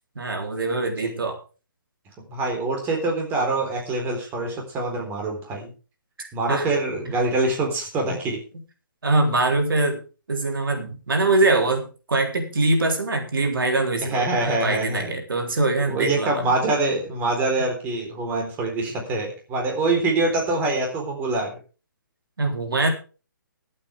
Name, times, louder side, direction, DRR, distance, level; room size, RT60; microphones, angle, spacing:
voice 1, 0.2-1.4 6.2-6.6 9.0-10.0 10.3-16.5 22.4-22.9, right 2 dB, 80° right, 3 dB, 3.7 m, -23 dB
voice 2, 2.3-5.7 6.3-8.4 14.1-15.1 15.9-21.5, right 2 dB, 15° right, 1 dB, 3.9 m, -25 dB
22.5 x 8.6 x 3.5 m, 0.34 s
hypercardioid pair, 150°, 11 cm